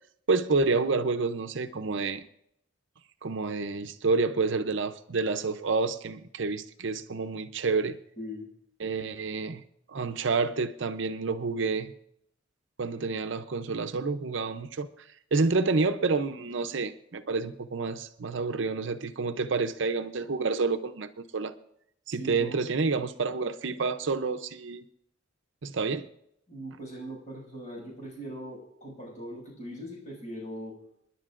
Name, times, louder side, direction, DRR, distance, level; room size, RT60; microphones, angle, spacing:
voice 1, 0.3-2.2 3.2-8.0 8.8-9.6 9.9-11.9 12.8-14.9 15.3-21.5 22.1-24.8 25.6-26.1, right 4 dB, 65° right, 9 dB, 0.6 m, -29 dB
voice 2, 8.2-8.5 22.1-22.5 26.5-30.8, equal, 40° left, -3 dB, 6.4 m, -40 dB
28.5 x 10.5 x 2.5 m, 0.75 s
head